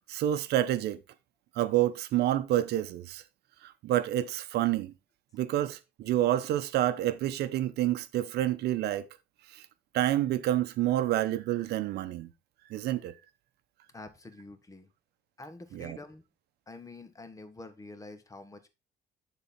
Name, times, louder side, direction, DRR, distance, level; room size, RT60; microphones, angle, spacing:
voice 1, 0.1-1.0 1.6-3.2 3.6-4.9 5.3-9.1 9.5-9.6 9.9-12.3 12.7-13.1 15.7-16.0, right 13 dB, 75° right, 0.8 m, -28 dB
voice 2, 13.9-14.9 15.4-16.2 16.7-18.7, left 2 dB, 20° left, 1.4 m, -47 dB
10.5 x 4.1 x 4.2 m
cardioid pair, 110°, 17 cm